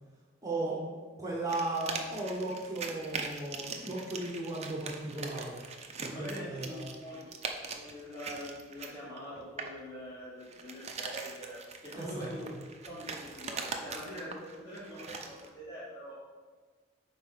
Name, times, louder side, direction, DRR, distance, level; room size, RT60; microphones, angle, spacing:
voice 1, 0.4-0.8 1.2-5.6 6.0-6.9 11.9-12.6, right 2 dB, 15° right, -3 dB, 1.2 m, -36 dB
sound 1, 1.5-9.8 10.4-15.5, right 4 dB, 35° right, 0.8 m, -42 dB
voice 2, 6.1-7.3 7.6-12.5 12.8-16.1, equal, 20° left, -11 dB, 2.7 m, -44 dB
9.3 x 4.0 x 5.9 m, 1.4 s
head